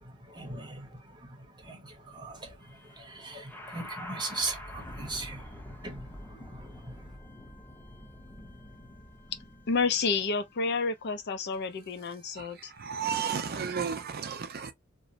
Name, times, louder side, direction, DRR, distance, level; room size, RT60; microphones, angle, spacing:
voice 1, 0.0-6.9, right 3 dB, 20° right, 0.8 m, -40 dB
sound 1, 2.6-13.6, left 1 dB, 10° left, 0.8 m, -47 dB
voice 2, 9.7-12.7, left 4 dB, 55° left, 0.5 m, -30 dB
voice 3, 12.3-14.7, right 7 dB, 50° right, 0.5 m, -33 dB
3.0 x 2.0 x 2.5 m
head